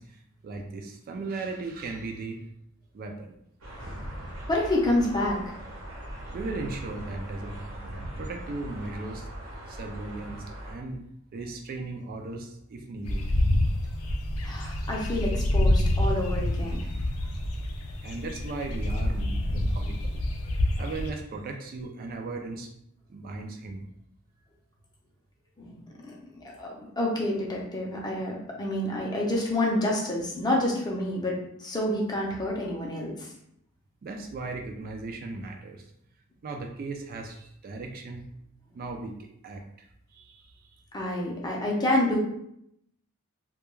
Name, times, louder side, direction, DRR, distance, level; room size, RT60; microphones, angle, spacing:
voice 1, 0.0-2.4 2.9-3.4 6.3-9.3 9.6-11.0 11.3-13.2 18.0-20.2 20.8-22.7 23.1-23.9 34.0-35.8 36.4-38.2 38.7-39.9 40.1-40.5, right 3 dB, 45° right, 2 dB, 0.3 m, -37 dB
sound 1, 3.6-10.7, right 1 dB, 80° right, 0.9 m, -40 dB
voice 2, 4.5-5.6 14.4-16.9 25.6-33.3 40.9-42.2, left 1 dB, 20° left, -2 dB, 0.5 m, -28 dB
sound 2, 13.0-21.1, left 1 dB, 85° left, 0.4 m, -27 dB
2.2 x 2.2 x 3.0 m, 0.75 s
head